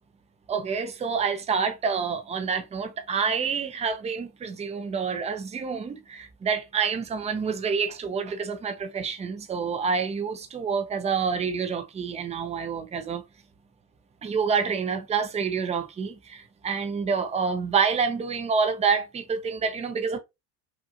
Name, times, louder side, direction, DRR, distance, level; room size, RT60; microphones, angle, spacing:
voice 1, 0.5-13.2 14.2-20.2, right 5 dB, 15° right, 0.5 m, -28 dB
5.7 x 2.4 x 2.6 m
supercardioid pair, 125°, 48 cm